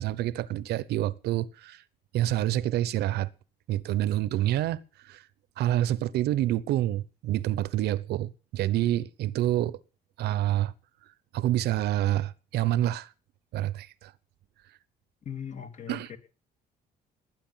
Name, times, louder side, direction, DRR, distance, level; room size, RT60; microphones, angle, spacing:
voice 1, 0.0-1.8 2.1-3.3 3.7-5.2 5.6-9.8 10.2-10.7 11.3-13.1 13.5-14.1 15.9-16.1, right 13 dB, 75° right, 1.0 m, -27 dB
voice 2, 15.2-16.2, left 8 dB, 45° left, 2.9 m, -39 dB
19.5 x 9.9 x 5.8 m
cardioid pair, 110°, 17 cm